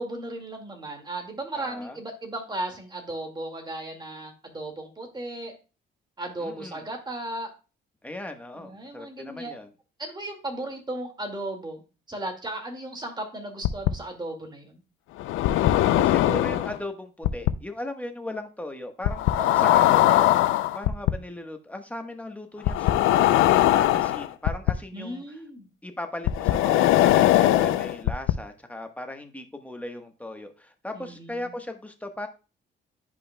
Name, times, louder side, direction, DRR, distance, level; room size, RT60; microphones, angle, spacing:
voice 1, 0.0-5.5 6.2-7.5 8.5-9.5 10.0-11.8 12.1-14.8 19.4-19.7 24.9-25.7 27.3-27.9 30.9-31.5, right 1 dB, 20° right, 2.0 m, -36 dB
voice 2, 1.5-2.0 6.4-6.8 8.0-9.7 15.8-25.2 25.8-32.3, left 1 dB, 5° left, 1.2 m, -37 dB
sound 1, 13.6-13.9 15.2-16.8 17.2-17.5 19.0-21.1 22.7-24.7 26.3-28.3, left 14 dB, 85° left, 0.4 m, -20 dB
10.5 x 5.2 x 2.2 m
cardioid pair, 90°, 20 cm